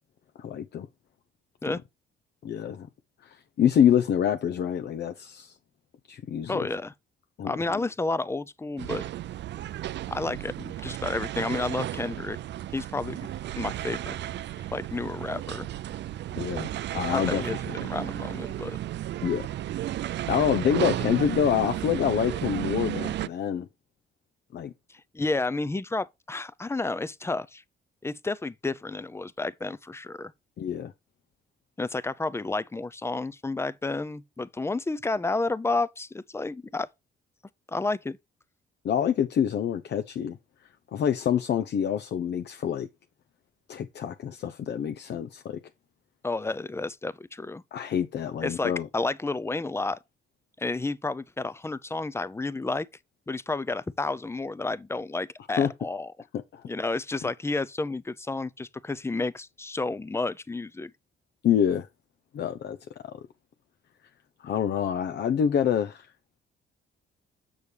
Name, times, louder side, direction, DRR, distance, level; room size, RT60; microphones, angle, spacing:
voice 1, 0.4-0.9 1.7-1.8 2.4-2.9 3.2-5.5 6.1-6.7 7.4-7.5 16.4-17.4 17.8-17.9 19.2-19.5 20.3-23.7 24.5-24.7 30.6-30.9 38.8-40.4 40.9-42.9 43.7-45.6 47.7-48.9 55.6-55.7 56.5-56.6 61.4-61.9 62.3-62.8 63.0-63.1 64.4-66.1, left 9 dB, 60° left, 0.7 m, -26 dB
voice 2, 6.5-6.9 7.4-9.0 10.1-12.4 12.7-13.2 13.6-14.1 14.7-15.7 17.1-18.8 24.9-27.6 28.0-30.3 31.8-36.9 37.7-38.2 46.2-47.6 48.4-50.0 50.6-52.9 53.3-56.1 56.6-60.9, left 3 dB, 15° left, 0.5 m, -31 dB
sound 1, 8.8-23.3, right 13 dB, 65° right, 0.4 m, -33 dB
7.1 x 6.3 x 3.3 m
cardioid pair, 90°, 20 cm